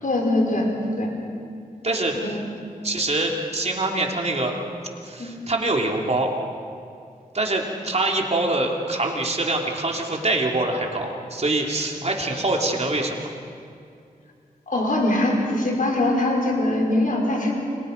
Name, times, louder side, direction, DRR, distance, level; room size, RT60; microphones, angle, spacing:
voice 1, 0.0-0.7 1.0-1.1 2.2-2.4 5.2-5.3 14.7-17.5, left 1 dB, 65° left, 0 dB, 5.0 m, -22 dB
voice 2, 1.8-2.4 2.8-4.5 5.0-6.3 7.3-13.2, right 2 dB, 45° right, 0 dB, 3.3 m, -24 dB
29.5 x 24.5 x 5.4 m, 2.4 s
cardioid pair, 60°, 15 cm